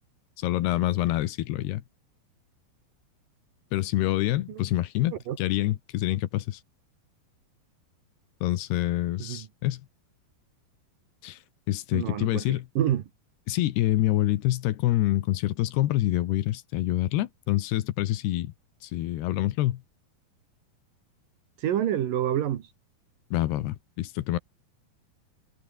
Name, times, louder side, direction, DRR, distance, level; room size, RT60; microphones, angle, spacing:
voice 1, 0.4-1.8 3.7-6.6 8.4-9.8 11.2-11.4 11.7-12.7 13.5-18.5 18.8-19.8 23.3-24.4, left 15 dB, 75° left, 3.1 m, -26 dB
voice 2, 11.9-13.0 21.6-22.6, right 11 dB, 65° right, 2.8 m, -27 dB
omnidirectional pair, 4.9 m